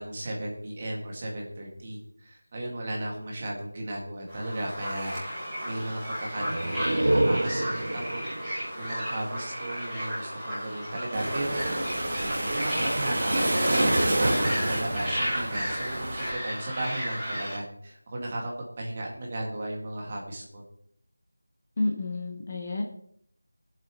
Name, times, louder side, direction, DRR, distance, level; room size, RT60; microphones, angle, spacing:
voice 1, 0.0-5.1 5.4-8.2 8.8-11.9 12.5-13.8 14.2-20.6, right 1 dB, 25° right, -1 dB, 2.0 m, -35 dB
sound 1, 4.3-17.6, equal, 5° right, 2.0 m, -34 dB
sound 2, 6.3-9.9, right 1 dB, 85° right, 0.6 m, -29 dB
Waves surf, 11.1-16.3, right 1 dB, 40° right, 2.2 m, -27 dB
voice 2, 21.8-22.8, left 2 dB, 25° left, 1 dB, 1.0 m, -30 dB
21.0 x 7.7 x 3.0 m, 0.69 s
figure-of-eight pair, 175°, 0 cm